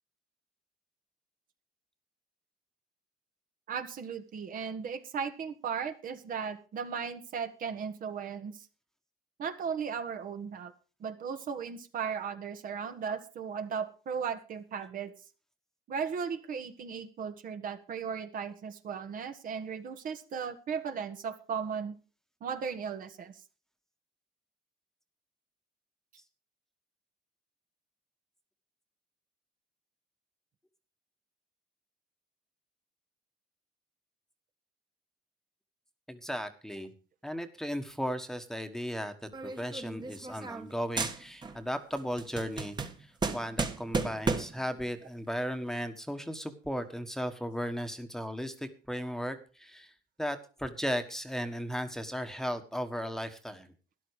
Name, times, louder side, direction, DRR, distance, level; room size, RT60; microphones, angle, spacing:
voice 1, 3.7-8.7 9.4-10.7 11.0-15.1 15.9-21.9 22.4-23.4, right 6 dB, 55° right, 8 dB, 1.6 m, -36 dB
voice 2, 36.1-36.9 37.2-49.9 50.2-53.7, equal, 5° left, 8 dB, 1.4 m, -36 dB
sound 1, 39.3-40.7 41.0-41.6 42.0-44.7, right 4 dB, 25° right, 1.5 m, -34 dB
13.0 x 11.0 x 4.8 m, 0.35 s
cardioid pair, 110°, 17 cm